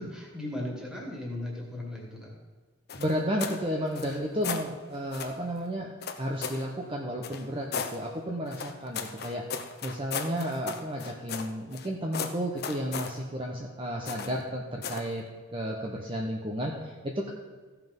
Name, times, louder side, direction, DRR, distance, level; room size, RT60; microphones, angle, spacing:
voice 1, 0.0-2.3, left 1 dB, 5° right, -2 dB, 2.2 m, -37 dB
sound 1, 2.9-3.6 3.9-4.7 5.1-5.4 6.0-6.7 7.2-8.0 8.5-11.9 12.1-13.1 14.1-14.4 14.8-15.1, left 6 dB, 50° left, 0.8 m, -36 dB
voice 2, 3.0-9.5 9.8-15.2 15.5-17.3, equal, 25° right, -1 dB, 0.9 m, -32 dB
15.0 x 5.9 x 5.4 m, 1.4 s
head